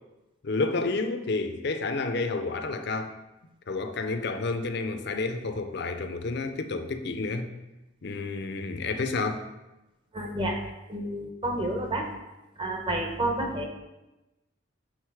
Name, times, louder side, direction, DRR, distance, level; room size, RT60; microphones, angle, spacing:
voice 1, 0.4-3.1 3.7-7.5 8.0-9.4, left 3 dB, 55° left, 7 dB, 0.5 m, -30 dB
voice 2, 10.1-10.6 10.9-12.0 12.6-13.7, right 1 dB, 25° right, 2 dB, 0.8 m, -29 dB
6.4 x 3.8 x 4.7 m, 1.0 s
head